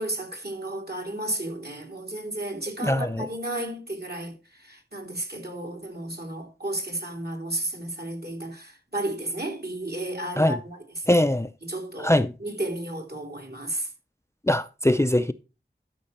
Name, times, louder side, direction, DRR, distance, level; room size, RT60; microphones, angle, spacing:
voice 1, 0.0-4.3 4.7-10.8 11.1-11.2 11.6-12.1 12.4-13.9, right 1 dB, 55° right, 3.0 m, -33 dB
voice 2, 2.8-3.3 10.4-10.6 11.1-11.5 12.0-12.3 14.5-15.3, left 1 dB, 15° left, 0.5 m, -22 dB
12.0 x 6.1 x 4.2 m
wide cardioid pair, 40°, 19 cm